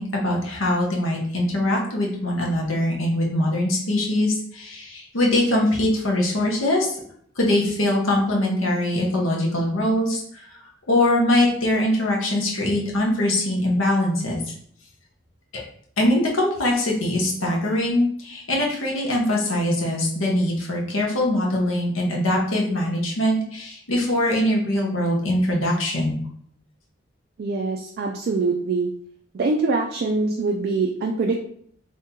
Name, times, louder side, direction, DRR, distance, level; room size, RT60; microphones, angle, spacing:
voice 1, 0.0-7.0 7.4-10.2 10.9-14.4 15.5-15.6 16.0-26.2, left 1 dB, 75° left, -1 dB, 0.9 m, -22 dB
voice 2, 27.4-28.9 29.3-31.4, right 3 dB, 50° right, 2 dB, 0.3 m, -24 dB
2.8 x 2.7 x 3.6 m, 0.64 s
head